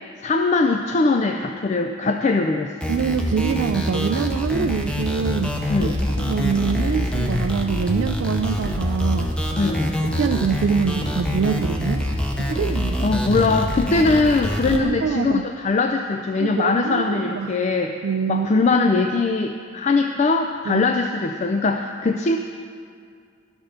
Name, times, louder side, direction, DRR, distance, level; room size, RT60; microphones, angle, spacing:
voice 1, 0.2-2.7 5.7-6.0 9.6-9.9 13.0-18.0 18.3-22.4, left 3 dB, 35° left, 5 dB, 0.4 m, -21 dB
sound 1, 2.8-14.8, equal, 5° left, 0.7 m, -25 dB
voice 2, 2.9-5.6 5.8-9.3 10.2-12.0 12.4-13.1 14.7-15.5 16.4-17.6 18.0-18.6 20.7-20.9, right 6 dB, 90° right, 6 dB, 0.3 m, -25 dB
sound 2, 4.6-14.0, left 1 dB, 60° left, 2.6 m, -36 dB
12.5 x 6.1 x 6.5 m, 2.3 s
head